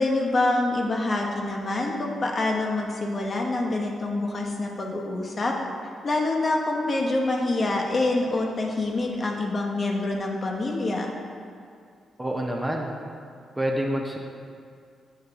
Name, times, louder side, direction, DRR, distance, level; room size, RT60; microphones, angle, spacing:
voice 1, 0.0-5.5 6.0-11.1, left 2 dB, 40° left, 0 dB, 0.9 m, -26 dB
voice 2, 12.2-12.9 13.6-14.2, right 1 dB, 10° right, 1 dB, 0.6 m, -27 dB
6.8 x 5.4 x 3.5 m, 2.2 s
cardioid pair, 95°, 0 cm